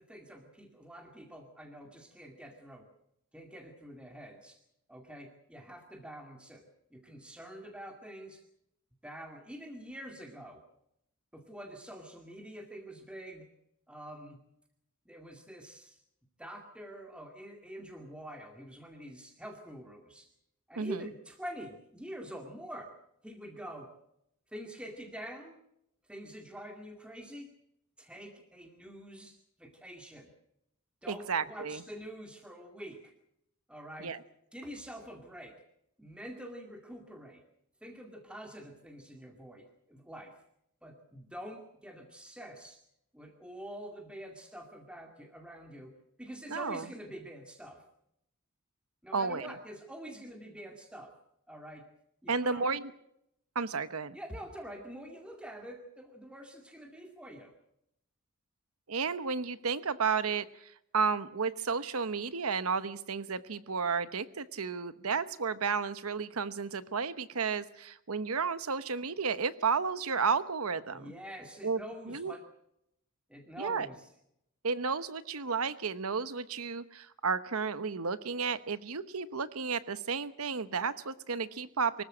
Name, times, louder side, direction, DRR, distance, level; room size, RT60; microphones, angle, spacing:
voice 1, 0.0-2.9 3.3-4.6 4.9-6.6 6.9-8.4 9.0-10.6 11.3-13.5 13.9-14.4 15.1-16.0 16.4-20.3 20.7-22.9 23.2-23.9 24.5-25.6 26.1-27.5 28.0-30.3 31.0-33.1 33.7-34.1 34.5-35.6 36.0-37.4 37.8-40.3 40.8-42.8 43.1-45.9 46.2-47.9 49.0-51.1 51.5-51.9 52.2-52.7 54.1-57.5 70.9-72.4 73.3-74.1, equal, 5° right, 3 dB, 2.2 m, -46 dB
voice 2, 20.8-21.1 31.1-31.8 34.0-34.2 46.5-46.8 49.1-49.5 52.3-52.8 53.5-54.2 58.9-71.1 71.6-71.8 72.1-72.3 73.6-73.9 74.6-82.0, right 5 dB, 90° right, 14 dB, 1.0 m, -32 dB
24.5 x 14.5 x 7.7 m, 0.77 s
head